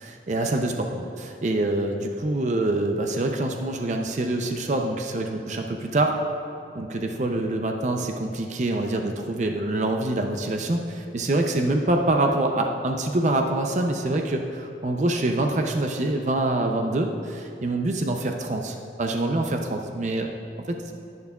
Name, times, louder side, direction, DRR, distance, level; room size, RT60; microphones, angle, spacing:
voice 1, 0.1-6.1 6.7-20.3 20.9-21.0, right 2 dB, 40° right, 3 dB, 0.5 m, -25 dB
11.0 x 10.5 x 2.3 m, 2.5 s
head